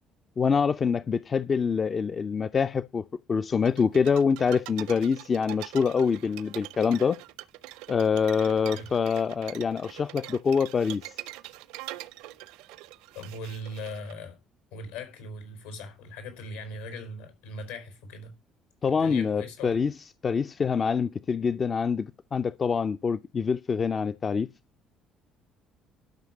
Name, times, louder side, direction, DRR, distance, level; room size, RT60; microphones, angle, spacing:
voice 1, 0.4-7.2 7.9-11.1 18.8-19.9 20.2-24.5, left 6 dB, 35° left, 0.6 m, -25 dB
sound 1, 3.7-14.1, right 17 dB, 65° right, 0.7 m, -43 dB
voice 2, 13.1-14.4 14.7-18.3 18.9-19.9, left 1 dB, 75° left, 4.9 m, -40 dB
12.0 x 6.4 x 8.3 m
figure-of-eight pair, 50°, 0 cm